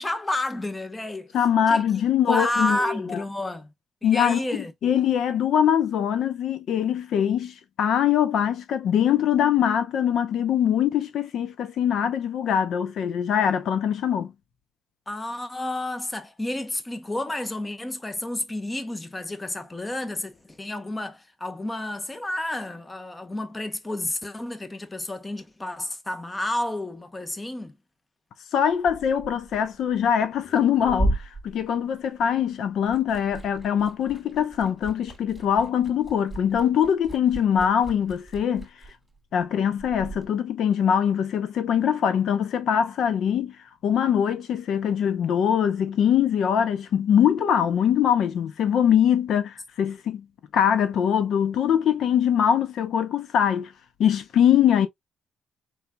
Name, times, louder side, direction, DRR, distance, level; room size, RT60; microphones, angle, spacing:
voice 1, 0.0-1.3 1.7-3.7 4.0-4.7 15.1-27.7, left 1 dB, 20° left, 0.9 m, -31 dB
voice 2, 1.3-3.2 4.0-4.4 4.8-14.3 28.5-38.7 39.3-43.6 43.8-50.2 50.5-53.7 54.0-54.9, left 8 dB, 70° left, 0.6 m, -22 dB
Liquid, 28.7-32.4 32.7-40.3, right 1 dB, 10° right, 2.5 m, -35 dB
4.7 x 3.9 x 2.2 m
cardioid pair, 90°, 0 cm